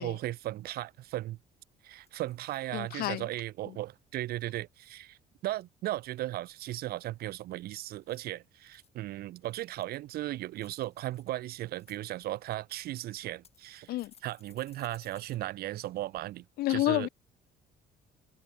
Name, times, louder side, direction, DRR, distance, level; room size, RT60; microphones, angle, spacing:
voice 1, 0.0-1.4 1.8-14.0 14.2-17.1, right 15 dB, 65° right, 0.6 m, -36 dB
sound 1, 0.9-1.0 1.3-1.6 2.0-2.6 3.1-3.5 7.9-8.9 9.4-10.1 10.6-11.2 11.6-12.0 12.8-12.9 13.4-15.4 15.7-15.8 16.1-16.2, left 6 dB, 35° left, 4.2 m, -61 dB
voice 2, 2.7-3.3 13.9-14.1 16.6-17.1, left 17 dB, 65° left, 0.4 m, -29 dB
open air
cardioid pair, 110°, 17 cm